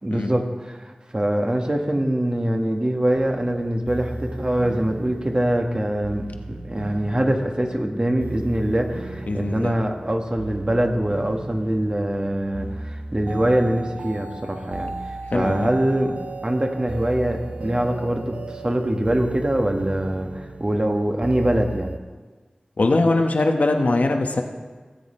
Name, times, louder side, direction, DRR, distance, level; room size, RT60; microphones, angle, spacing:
voice 1, 0.0-21.9, right 1 dB, 35° right, 3 dB, 1.3 m, -24 dB
sound 1, 3.1-22.0, right 2 dB, 80° right, 0.8 m, -35 dB
voice 2, 9.3-9.7 15.3-15.7 22.8-24.4, left 2 dB, 75° left, 4 dB, 1.0 m, -21 dB
17.5 x 8.0 x 4.3 m, 1.4 s
wide cardioid pair, 55°, 3 cm